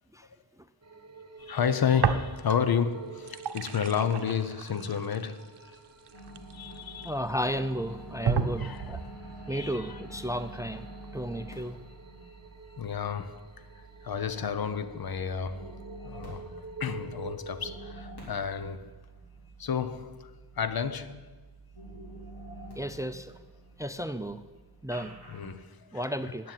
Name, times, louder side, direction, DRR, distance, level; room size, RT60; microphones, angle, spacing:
sound 1, 0.8-17.9, right 4 dB, 40° right, 1.0 m, -49 dB
voice 1, 1.4-5.5 6.5-7.2 8.6-9.1 9.5-10.0 12.8-13.6 14.0-18.9 19.6-21.3 25.3-26.1 26.4-26.5, left 7 dB, 65° left, 0.7 m, -31 dB
sound 2, 2.0-2.8 3.1-7.1 7.6-7.7 8.3-9.1, right 7 dB, 80° right, 0.7 m, -32 dB
sound 3, 6.1-25.6, right 2 dB, 80° left, 3.9 m, -47 dB
voice 2, 7.0-9.0 9.5-10.9 11.1-11.8 22.8-23.3 23.8-24.4 24.8-25.1 25.9-26.5, equal, 10° right, 0.4 m, -33 dB
9.7 x 7.6 x 9.2 m
wide cardioid pair, 95°, 39 cm